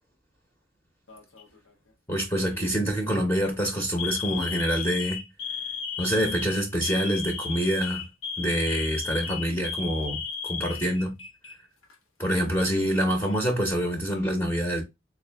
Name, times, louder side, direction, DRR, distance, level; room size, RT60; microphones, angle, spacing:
Alarm, 1.1-1.6 2.5-2.8 3.2-3.4 4.0-11.5 11.8-11.9 12.9-13.6, left 6 dB, 80° left, 0.8 m, -35 dB
voice 1, 2.1-5.2 6.0-8.0 8.4-11.1 12.2-14.8, equal, 15° left, 0.7 m, -26 dB
3.4 x 2.5 x 3.3 m
head